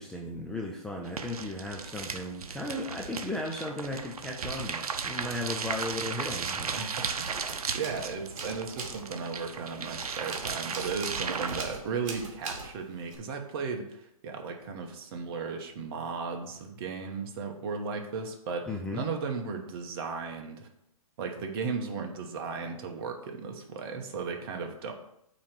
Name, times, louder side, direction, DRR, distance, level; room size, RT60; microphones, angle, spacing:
voice 1, 0.0-6.7 18.7-19.1, left 1 dB, 5° left, -1 dB, 0.4 m, -36 dB
sound 1, 1.0-11.6, right 5 dB, 80° right, 0.7 m, -36 dB
sound 2, 6.6-6.8 7.1-13.2, right 3 dB, 60° right, 1.8 m, -42 dB
voice 2, 6.7-7.3 7.7-20.7 21.2-24.9, right 5 dB, 40° right, 4 dB, 1.2 m, -36 dB
8.4 x 3.1 x 5.9 m, 0.78 s
hypercardioid pair, 140°, 19 cm